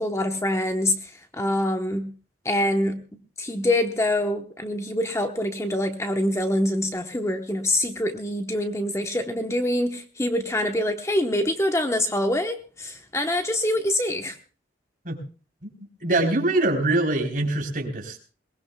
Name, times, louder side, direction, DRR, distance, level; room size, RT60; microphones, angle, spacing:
voice 1, 0.0-2.1 2.4-3.0 3.4-14.4, left 1 dB, 15° left, 6 dB, 0.9 m, -25 dB
voice 2, 16.0-18.2, right 2 dB, 45° right, 2 dB, 3.5 m, -23 dB
22.0 x 19.5 x 2.2 m, 0.36 s
head